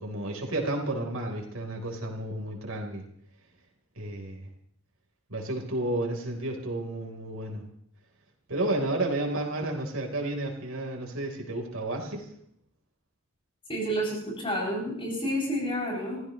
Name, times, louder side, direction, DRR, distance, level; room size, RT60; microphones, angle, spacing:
voice 1, 0.0-3.0 4.0-4.5 5.3-7.6 8.5-12.3, right 1 dB, 80° right, 1 dB, 3.8 m, -31 dB
voice 2, 13.7-16.2, equal, 25° left, -3 dB, 7.2 m, -30 dB
29.5 x 15.5 x 3.1 m, 0.67 s
head